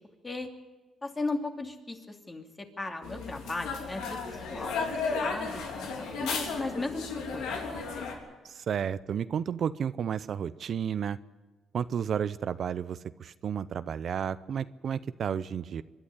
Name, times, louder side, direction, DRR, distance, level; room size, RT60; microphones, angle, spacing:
voice 1, 1.0-2.0 2.3-2.4 2.8-4.8 5.2-5.9 6.2-7.7, left 2 dB, 25° left, 3 dB, 2.7 m, -36 dB
sound 1, 3.0-8.1, left 4 dB, 90° left, 3.4 m, -34 dB
voice 2, 8.4-11.2 11.7-15.8, right 8 dB, 60° right, 14 dB, 0.6 m, -32 dB
24.0 x 11.5 x 9.7 m, 1.2 s
cardioid pair, 90°, 0 cm